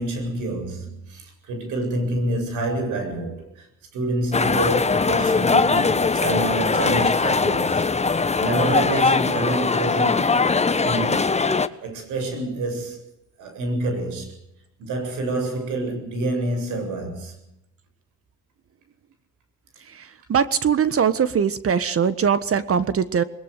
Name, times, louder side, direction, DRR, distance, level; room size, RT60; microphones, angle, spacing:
voice 1, 0.0-3.7 3.9-10.4 10.8-11.5 11.8-13.0 13.4-14.4 14.8-17.5, right 2 dB, 90° right, 7.8 m, -27 dB
sound 1, 4.3-11.7, left 4 dB, 20° left, 1.3 m, -21 dB
voice 2, 19.9-23.2, right 7 dB, 50° right, 1.5 m, -21 dB
21.0 x 21.0 x 6.7 m
cardioid pair, 90°, 30 cm